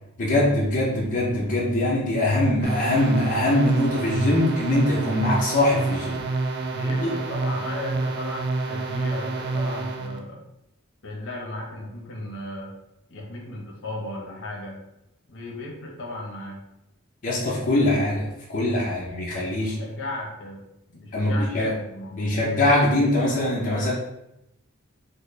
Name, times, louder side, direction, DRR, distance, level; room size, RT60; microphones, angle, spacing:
voice 1, 0.2-6.2 7.0-7.1 17.2-19.8 21.1-21.7 22.2-23.9, left 1 dB, 40° left, -6 dB, 0.6 m, -22 dB
sound 1, 2.6-10.2, right 3 dB, 50° right, 0.4 m, -28 dB
voice 2, 6.7-10.4 11.0-12.7 13.1-14.8 15.3-16.6 18.8-19.1 19.5-20.6 20.9-22.4, left 1 dB, 65° left, -2 dB, 0.9 m, -36 dB
4.2 x 2.2 x 3.2 m, 0.87 s
head